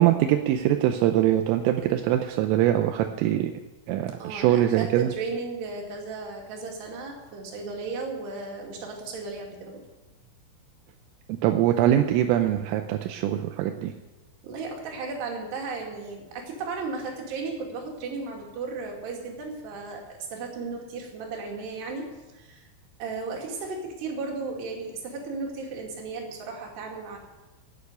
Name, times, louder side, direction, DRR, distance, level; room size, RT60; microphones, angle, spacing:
voice 1, 0.0-3.5 3.9-5.1 11.3-13.9, right 12 dB, 85° right, 5 dB, 3.3 m, -23 dB
voice 2, 4.2-9.8 14.4-22.7 23.0-27.2, right 4 dB, 60° right, 1 dB, 4.1 m, -35 dB
11.5 x 9.1 x 9.6 m, 1.1 s
omnidirectional pair, 5.9 m